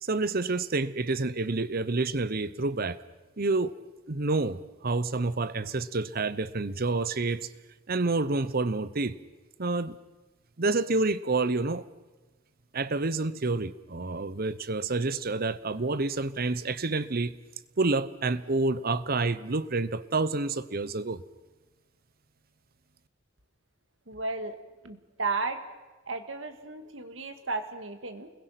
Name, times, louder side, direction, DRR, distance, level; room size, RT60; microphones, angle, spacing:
voice 1, 0.0-3.0 3.4-3.7 4.1-7.5 7.9-9.2 9.6-10.0 10.6-11.8 12.7-17.3 17.8-21.2, right 3 dB, 50° right, 16 dB, 0.9 m, -28 dB
voice 2, 24.1-24.6 24.8-25.6 26.1-28.3, right 3 dB, 75° right, 8 dB, 2.1 m, -34 dB
29.5 x 21.5 x 5.9 m, 1.2 s
head